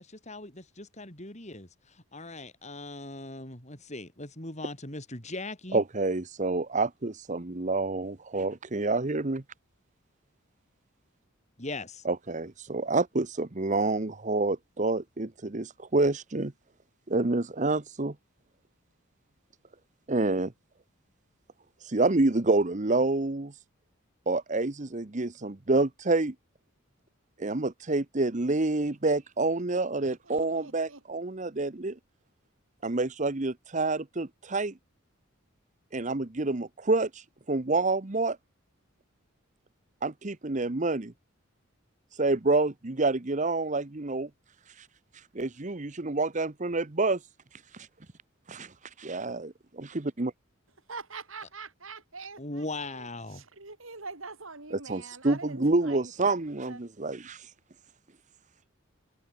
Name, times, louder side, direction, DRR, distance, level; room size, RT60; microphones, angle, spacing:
voice 1, 0.0-5.8 11.6-12.0 52.4-53.4, left 2 dB, 35° left, 4.5 m, -39 dB
voice 2, 5.7-9.4 12.0-16.5 17.1-18.1 20.1-20.5 21.9-23.5 24.3-26.3 27.4-32.0 32.8-34.8 35.9-37.1 37.5-38.4 40.0-41.1 42.2-44.3 45.3-47.2 48.5-48.7 49.0-50.3 54.7-57.4, right 2 dB, 35° right, 1.0 m, -28 dB
voice 3, 29.9-31.2 50.9-56.8, right 4 dB, 70° right, 5.8 m, -45 dB
head